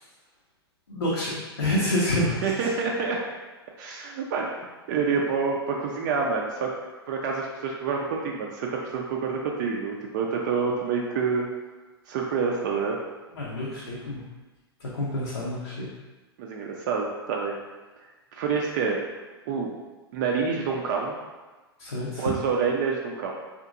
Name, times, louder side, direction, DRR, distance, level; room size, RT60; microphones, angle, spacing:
voice 1, 0.9-2.7 13.3-14.2 14.8-15.9 21.8-22.3, left 1 dB, 80° left, -6 dB, 0.6 m, -28 dB
voice 2, 2.4-3.2 3.8-4.5 4.9-6.7 7.1-11.5 12.1-13.0 16.4-17.5 18.3-19.0 19.5-19.7 20.1-21.1 22.2-23.3, right 5 dB, 45° right, -1 dB, 0.4 m, -27 dB
2.7 x 2.5 x 2.4 m, 1.2 s
figure-of-eight pair, 100°, 13 cm